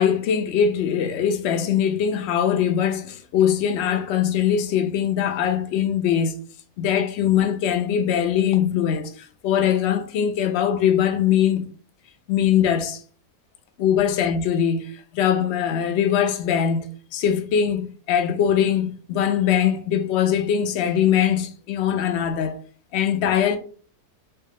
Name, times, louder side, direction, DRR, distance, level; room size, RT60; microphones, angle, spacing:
voice 1, 0.0-6.4 6.8-11.6 12.3-13.0 13.8-16.9 17.1-22.6 22.9-23.6, left 9 dB, 75° left, 0.6 m, -21 dB
4.5 x 2.0 x 3.2 m
omnidirectional pair, 1.6 m